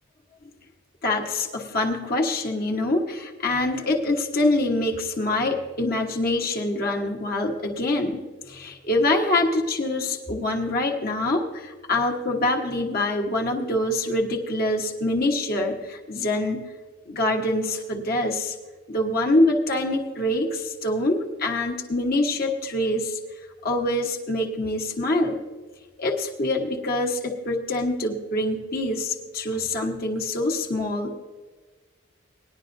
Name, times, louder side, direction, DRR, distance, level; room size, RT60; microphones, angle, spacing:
voice 1, 1.0-16.6 17.1-18.6 18.9-23.2 23.6-25.4 26.0-31.1, left 2 dB, 45° left, 1 dB, 1.2 m, -25 dB
19.0 x 11.0 x 2.6 m, 1.4 s
head